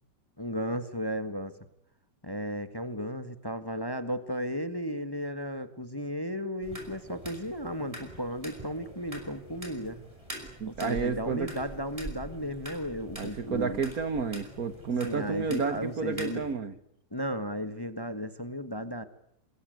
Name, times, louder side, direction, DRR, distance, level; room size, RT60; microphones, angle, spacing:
voice 1, 0.4-1.5 2.2-10.0 10.6-13.8 15.0-16.4 17.1-19.0, equal, 15° left, 1.5 m, -34 dB
sound 1, 6.6-16.5, equal, 15° right, 7.0 m, -45 dB
voice 2, 10.6-11.5 13.2-16.7, right 5 dB, 55° right, 1.7 m, -31 dB
27.0 x 22.0 x 9.4 m
omnidirectional pair, 2.0 m